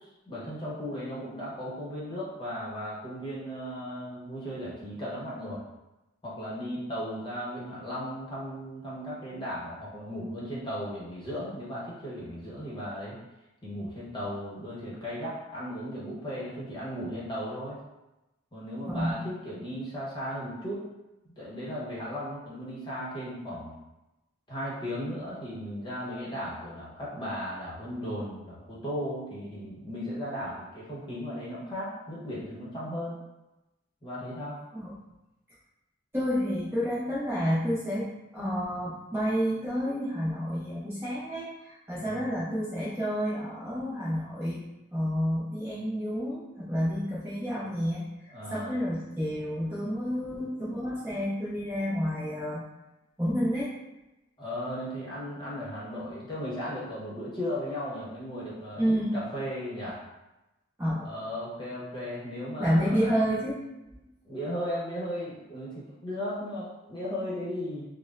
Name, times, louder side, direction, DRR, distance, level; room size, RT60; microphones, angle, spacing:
voice 1, 0.3-5.6 6.2-13.2 13.6-17.8 18.5-20.8 21.4-23.7 24.5-33.2 34.0-34.6 41.9-42.3 48.3-48.8 54.4-60.0 61.0-63.1 64.2-67.8, equal, 20° left, -7 dB, 1.0 m, -36 dB
voice 2, 18.9-19.2 34.7-34.9 36.1-38.1 38.3-44.6 44.9-52.6 53.2-53.7 58.8-59.2 60.8-61.1 62.6-63.6 63.8-64.0, equal, 10° right, -9 dB, 0.7 m, -29 dB
5.9 x 2.1 x 2.4 m, 0.99 s
head